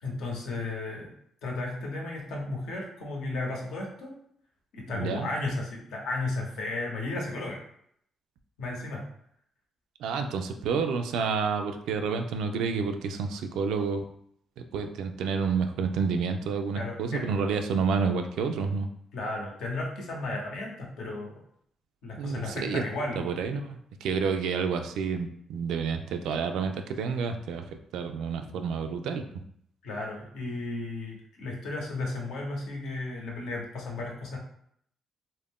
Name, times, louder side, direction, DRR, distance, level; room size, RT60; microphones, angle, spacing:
voice 1, 0.0-1.1 1.4-4.1 4.7-7.6 8.6-9.1 16.7-17.3 19.1-21.3 22.0-23.3 29.8-34.4, left 2 dB, 80° left, -1 dB, 0.8 m, -34 dB
voice 2, 4.9-5.3 10.0-14.1 14.6-18.9 22.2-22.8 23.2-29.4, right 5 dB, 85° right, 6 dB, 0.3 m, -29 dB
2.4 x 2.1 x 3.5 m, 0.69 s
cardioid pair, 90°, 0 cm